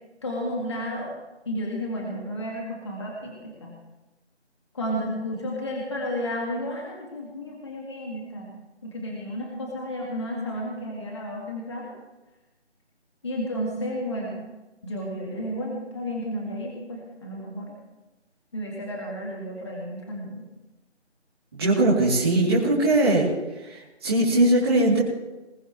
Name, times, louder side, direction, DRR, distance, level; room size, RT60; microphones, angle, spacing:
voice 1, 0.2-1.1 1.5-3.8 4.7-8.5 8.8-11.9 13.2-14.4 14.8-17.7 18.5-20.4, equal, 25° left, -2 dB, 1.9 m, -32 dB
voice 2, 21.5-23.3 23.6-25.0, right 1 dB, 20° right, -8 dB, 2.8 m, -20 dB
20.5 x 16.5 x 3.1 m, 1.1 s
figure-of-eight pair, 170°, 34 cm